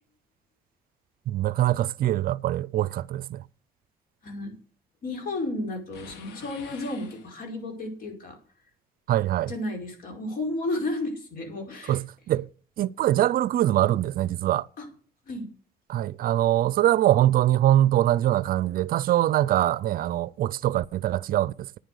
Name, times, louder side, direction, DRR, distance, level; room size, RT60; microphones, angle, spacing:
voice 1, 1.3-3.4 9.1-9.5 11.9-12.5 12.8-14.7 15.9-21.8, right 13 dB, 60° right, 0.5 m, -23 dB
voice 2, 4.2-4.5 5.0-8.4 9.4-12.0 14.8-14.9 15.3-15.5, left 2 dB, 60° left, 5.0 m, -32 dB
sound 1, 5.9-7.8, left 7 dB, 80° left, 1.8 m, -47 dB
10.0 x 9.6 x 6.7 m
cardioid pair, 110°, 17 cm